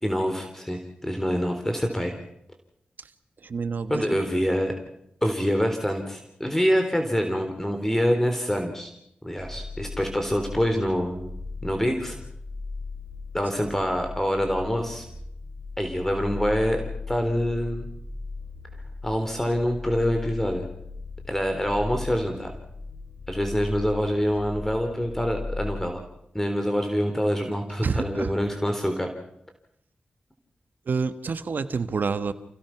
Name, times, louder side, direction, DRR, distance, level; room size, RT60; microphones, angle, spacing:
voice 1, 0.0-2.1 3.9-4.7 5.2-8.9 9.2-11.3 11.6-12.2 13.3-15.0 15.8-16.8 17.1-17.9 19.0-20.7 21.3-22.5 23.3-26.0 26.3-29.1, equal, 10° left, 4 dB, 3.6 m, -25 dB
voice 2, 3.4-4.3 27.8-28.3 30.9-32.3, right 5 dB, 70° right, 11 dB, 1.4 m, -28 dB
sound 1, 9.4-25.9, left 3 dB, 35° left, 7.6 m, -37 dB
28.5 x 16.5 x 6.0 m, 0.78 s
cardioid pair, 50°, 3 cm